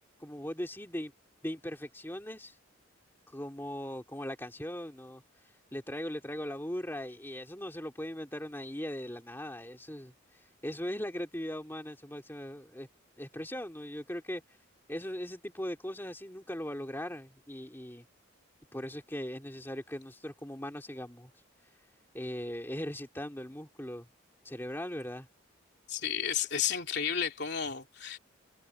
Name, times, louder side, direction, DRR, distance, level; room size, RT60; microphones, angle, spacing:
voice 1, 0.2-1.1 1.4-2.6 3.3-5.2 5.7-12.9 13.2-14.4 14.9-18.0 18.7-21.3 22.1-24.1 24.4-25.3, equal, 10° left, 2.3 m, -39 dB
voice 2, 25.9-28.2, left 8 dB, 55° left, 3.2 m, -32 dB
head